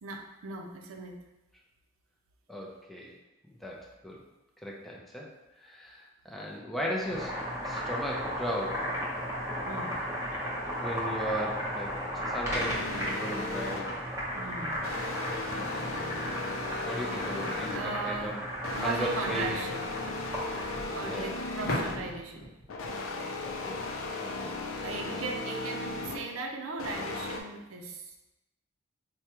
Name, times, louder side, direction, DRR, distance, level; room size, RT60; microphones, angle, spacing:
voice 1, 0.0-1.2 9.6-9.9 14.3-14.8 17.7-18.4 18.7-19.9 20.9-22.5 24.8-28.1, right 3 dB, 85° right, 3 dB, 0.5 m, -38 dB
voice 2, 2.5-3.1 3.6-4.2 4.6-5.3 5.6-8.9 10.8-12.0 12.3-13.9 15.5-15.9 16.8-18.4 18.8-19.6 21.0-21.3 23.4-23.9 24.2-24.9, equal, ahead, -3 dB, 0.5 m, -37 dB
Boiling, 6.9-21.0, equal, 15° right, 0.8 m, -35 dB
sound 1, 12.5-14.1 14.8-18.1 18.6-22.2 22.7-26.3 26.8-27.4, left 2 dB, 85° left, 0.5 m, -36 dB
sound 2, 21.6-24.3, left 1 dB, 45° left, 0.7 m, -37 dB
4.6 x 2.2 x 2.9 m, 0.96 s
head